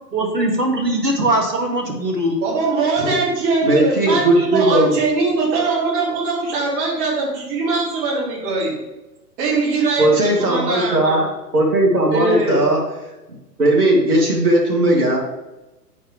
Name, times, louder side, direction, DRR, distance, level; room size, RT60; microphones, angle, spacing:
voice 1, 0.1-2.4, right 1 dB, 85° right, 2 dB, 2.2 m, -20 dB
voice 2, 2.4-8.8 9.4-11.3 12.1-12.7, right 3 dB, 25° right, -3 dB, 3.0 m, -21 dB
voice 3, 3.6-4.9 10.0-11.3 11.5-12.8 13.6-15.2, right 1 dB, 65° right, -2 dB, 2.9 m, -17 dB
8.9 x 8.6 x 3.4 m, 1.0 s
figure-of-eight pair, 120°, 48 cm